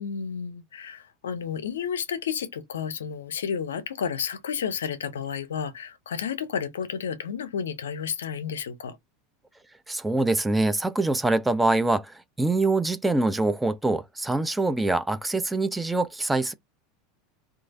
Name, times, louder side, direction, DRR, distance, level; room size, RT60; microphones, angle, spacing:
voice 1, 0.0-9.0, left 7 dB, 75° left, 0.5 m, -31 dB
voice 2, 9.9-16.5, right 2 dB, 10° right, 0.4 m, -24 dB
3.1 x 2.3 x 2.4 m
figure-of-eight pair, 80°, 0 cm